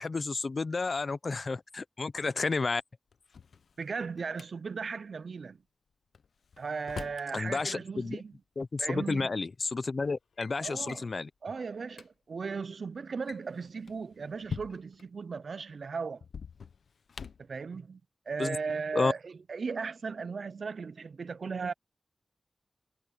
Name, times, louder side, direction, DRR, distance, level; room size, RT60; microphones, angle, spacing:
voice 1, 0.0-2.8 7.3-8.2 8.6-11.3 18.4-18.6 18.9-19.1, left 3 dB, 50° left, 0.7 m, -31 dB
Drawer open or close, 3.1-4.5 6.1-7.3 8.6-8.7 9.5-9.8 10.1-10.5 10.9-11.1 11.6-11.7 11.9-12.1 13.1-15.1 16.2-17.5, left 5 dB, 90° left, 0.7 m, -44 dB
voice 2, 3.8-5.6 6.6-8.3 8.8-9.3 10.6-11.1 11.4-16.2 17.4-18.0 18.3-21.7, right 5 dB, 65° right, 0.5 m, -37 dB
wide cardioid pair, 110°, 0 cm